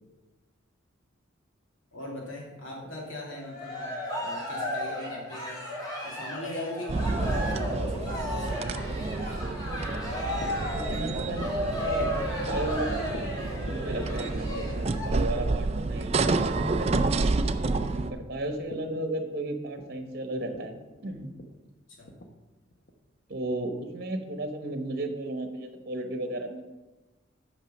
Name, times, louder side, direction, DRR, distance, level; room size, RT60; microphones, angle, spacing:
voice 1, 1.9-5.6 6.0-9.4 17.8-18.1 22.0-22.1, left 1 dB, 80° left, -2 dB, 2.7 m, -40 dB
Cheering, 3.3-15.1, left 1 dB, 20° left, 2.0 m, -34 dB
sound 1, 6.9-18.1, right 3 dB, 30° right, 0.4 m, -29 dB
sound 2, 9.8-24.1, equal, 50° left, 1.0 m, -49 dB
voice 2, 10.7-13.1 13.6-17.1 18.0-21.3 23.3-26.6, right 2 dB, 50° right, 6 dB, 1.1 m, -34 dB
9.0 x 5.8 x 5.9 m, 1.1 s
head